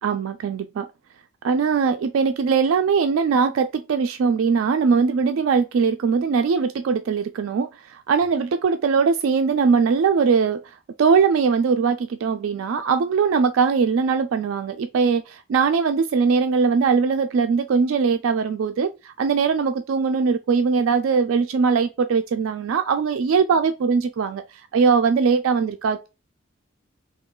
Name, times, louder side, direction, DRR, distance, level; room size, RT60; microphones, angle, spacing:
voice 1, 0.0-0.9 1.4-10.6 11.0-24.4 24.7-26.1, right 5 dB, 70° right, 0.3 m, -21 dB
3.1 x 2.3 x 3.6 m
head